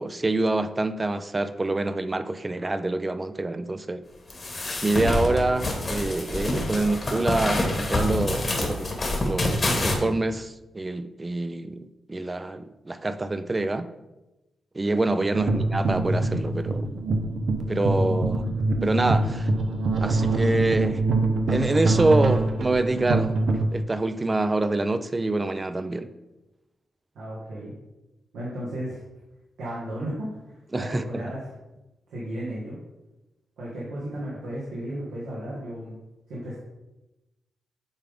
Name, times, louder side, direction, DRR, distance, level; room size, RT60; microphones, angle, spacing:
voice 1, 0.0-4.0 4.8-8.9 9.2-13.9 14.7-16.9 17.7-18.5 18.8-19.5 20.0-21.0 21.5-26.1 30.7-31.2, right 2 dB, 30° right, 10 dB, 0.5 m, -26 dB
sound 1, 4.3-9.9, left 2 dB, 45° left, 1.6 m, -27 dB
sound 2, 15.3-23.7, right 2 dB, 70° right, 0.7 m, -24 dB
voice 2, 27.2-27.7 28.3-29.0 29.6-31.5 32.1-32.8 33.6-36.0 36.3-36.6, right 1 dB, 90° right, -7 dB, 1.6 m, -34 dB
8.8 x 3.7 x 3.6 m, 1.0 s
supercardioid pair, 55°, 0 cm